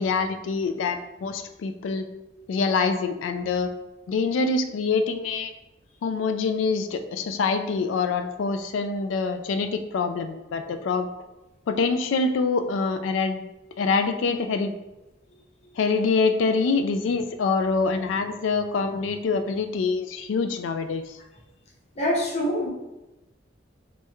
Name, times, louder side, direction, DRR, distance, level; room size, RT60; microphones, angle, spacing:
voice 1, 0.0-2.1 2.5-3.7 4.1-5.5 6.0-11.1 11.7-13.4 13.8-14.7 15.8-21.2, left 4 dB, 85° left, 8 dB, 0.3 m, -25 dB
voice 2, 22.0-22.7, left 1 dB, 35° left, -4 dB, 0.6 m, -25 dB
3.2 x 3.0 x 2.3 m, 1.0 s
head